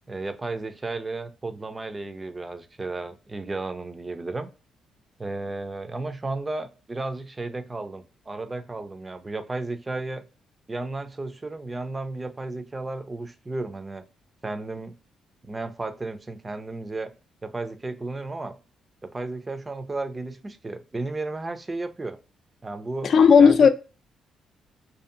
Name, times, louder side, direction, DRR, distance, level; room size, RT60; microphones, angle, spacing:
voice 1, 0.1-4.5 5.2-10.2 10.7-14.0 14.4-14.9 15.4-17.1 17.4-18.6 19.0-22.2 22.6-23.1 23.4-23.7, right 2 dB, 25° right, 0.4 m, -33 dB
voice 2, 23.0-23.7, left 6 dB, 60° left, 0.3 m, -14 dB
2.6 x 2.5 x 2.4 m
cardioid pair, 90°, 0 cm